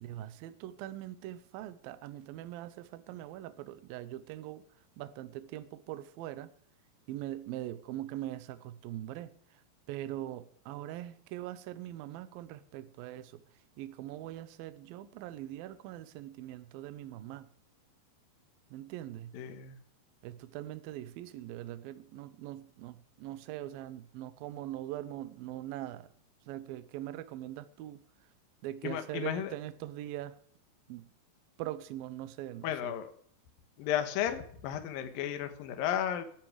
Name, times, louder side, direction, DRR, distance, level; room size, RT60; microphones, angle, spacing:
voice 1, 0.0-4.6 5.0-6.5 7.1-9.6 9.9-13.4 13.8-17.5 18.7-19.3 20.2-26.1 26.5-28.0 28.6-30.4 30.9-31.1 31.6-32.9, right 13 dB, 75° right, 2.3 m, -42 dB
voice 2, 19.3-19.8 28.8-29.5 32.6-33.1 33.8-36.2, left 10 dB, 65° left, 2.8 m, -33 dB
17.0 x 10.5 x 5.0 m
omnidirectional pair, 4.9 m